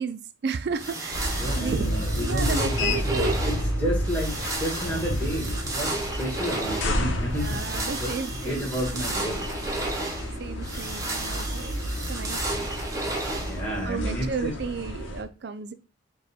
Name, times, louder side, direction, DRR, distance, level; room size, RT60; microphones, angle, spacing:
voice 1, 0.0-1.9 2.2-3.3 7.4-8.6 9.9-11.8 12.1-12.8 13.9-15.7, right 5 dB, 55° right, 0.4 m, -33 dB
sound 1, 0.7-13.9, right 2 dB, 15° right, 0.8 m, -33 dB
sound 2, 1.1-15.2, equal, 75° left, 0.9 m, -31 dB
voice 2, 1.4-8.1 8.4-9.5 9.8-10.0 13.3-14.5, equal, 10° left, 1.5 m, -32 dB
5.0 x 2.3 x 4.1 m
head